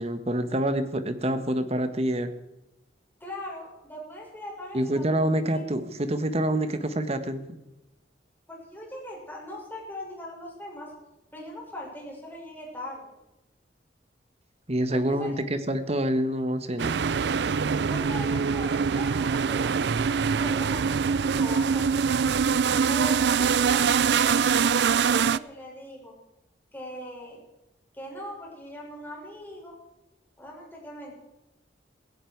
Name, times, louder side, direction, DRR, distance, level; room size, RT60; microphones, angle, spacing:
voice 1, 0.0-2.3 4.7-7.6 14.7-17.0, right 1 dB, 35° right, 10 dB, 1.4 m, -27 dB
voice 2, 3.2-5.2 5.5-5.6 8.5-10.9 11.3-13.0 14.9-15.3 17.9-21.9 22.9-26.1 26.7-27.4 27.9-29.8 30.4-31.1, left 1 dB, 10° left, -3 dB, 6.4 m, -40 dB
sound 1, 16.8-25.4, right 6 dB, 65° right, 0.4 m, -24 dB
16.5 x 16.5 x 4.7 m, 0.96 s
head